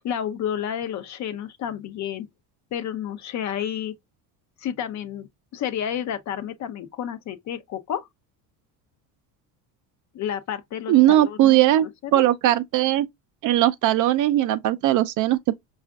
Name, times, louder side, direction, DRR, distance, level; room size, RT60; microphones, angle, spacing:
voice 1, 0.0-2.3 2.7-3.9 4.6-8.1 10.1-12.3, left 9 dB, 45° left, 0.6 m, -31 dB
voice 2, 10.9-11.9 12.1-13.1 13.4-15.6, right 14 dB, 50° right, 0.4 m, -19 dB
4.9 x 2.4 x 2.3 m
cardioid pair, 115°, 42 cm